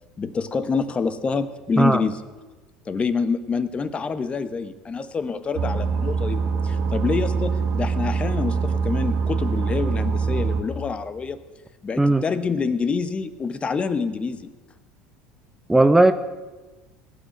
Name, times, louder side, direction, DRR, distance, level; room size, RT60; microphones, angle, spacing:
voice 1, 0.2-2.2 2.9-11.4 11.8-14.5, left 5 dB, 30° left, 13 dB, 1.0 m, -26 dB
sound 1, 5.6-10.6, right 5 dB, 55° right, 1.7 m, -24 dB
voice 2, 15.7-16.1, right 2 dB, 10° right, 10 dB, 0.7 m, -16 dB
18.5 x 6.3 x 9.2 m, 1.2 s
hypercardioid pair, 70°, 4 cm